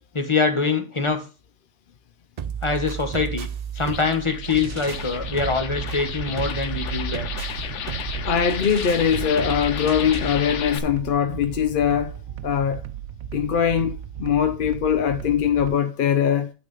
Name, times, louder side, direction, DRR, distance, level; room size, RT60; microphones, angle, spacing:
voice 1, 0.1-1.3 2.6-3.5 3.7-7.3, left 4 dB, 25° left, 1.2 m, -24 dB
sound 1, 2.4-10.4, right 8 dB, 55° right, 0.5 m, -34 dB
sound 2, 3.7-10.8, left 8 dB, 90° left, 1.2 m, -33 dB
sound 3, 4.5-15.8, right 10 dB, 75° right, 0.9 m, -36 dB
voice 2, 8.3-12.1 12.4-12.8 13.3-16.5, left 8 dB, 55° left, 0.7 m, -22 dB
9.3 x 4.0 x 6.6 m
omnidirectional pair, 1.2 m